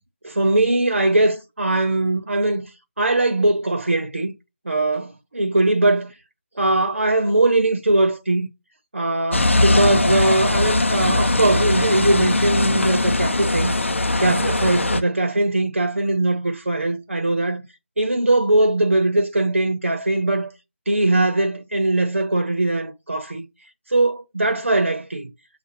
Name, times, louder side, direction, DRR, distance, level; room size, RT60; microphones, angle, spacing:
voice 1, 0.2-2.7 3.0-4.3 4.6-6.1 6.6-8.5 8.9-13.8 14.2-17.6 18.0-20.5 20.9-23.4 23.9-25.3, right 2 dB, 75° right, 0.8 m, -20 dB
sound 1, 9.3-15.0, left 2 dB, 70° left, 0.6 m, -20 dB
6.8 x 2.4 x 2.9 m
figure-of-eight pair, 160°, 7 cm